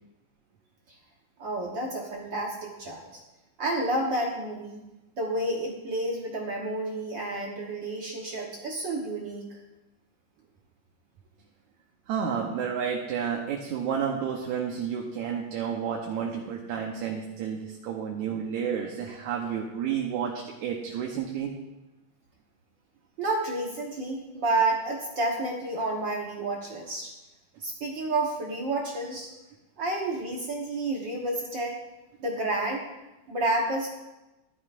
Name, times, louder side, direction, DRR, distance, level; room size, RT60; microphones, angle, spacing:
voice 1, 1.4-3.1 3.6-4.8 5.2-9.6 23.2-27.1 27.6-29.3 29.8-31.8 32.2-32.9 33.3-33.9, right 2 dB, 55° right, -1 dB, 1.3 m, -30 dB
voice 2, 12.1-21.5, right 7 dB, 75° right, 0 dB, 2.2 m, -31 dB
14.5 x 12.0 x 2.5 m, 1.0 s
omnidirectional pair, 3.5 m